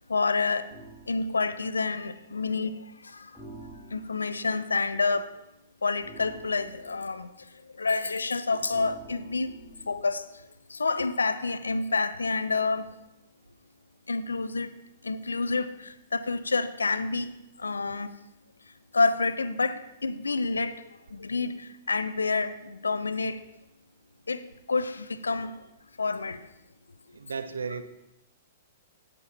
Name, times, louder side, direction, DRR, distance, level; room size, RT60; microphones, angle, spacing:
voice 1, 0.1-0.7 1.1-3.3 3.9-5.3 5.8-7.3 7.8-9.5 9.9-10.3 10.7-12.9 14.1-14.7 15.0-17.3 17.6-18.1 18.9-20.8 21.1-23.4 24.3-24.4 24.7-25.6 26.0-26.4, left 3 dB, 80° left, 0.5 m, -28 dB
sound 1, 0.7-1.1 3.3-4.3 6.0-7.1 8.7-10.0, right 2 dB, 10° right, 2.4 m, -48 dB
voice 2, 27.1-27.8, right 5 dB, 75° right, 0.7 m, -34 dB
16.5 x 6.8 x 2.8 m
figure-of-eight pair, 110°, 0 cm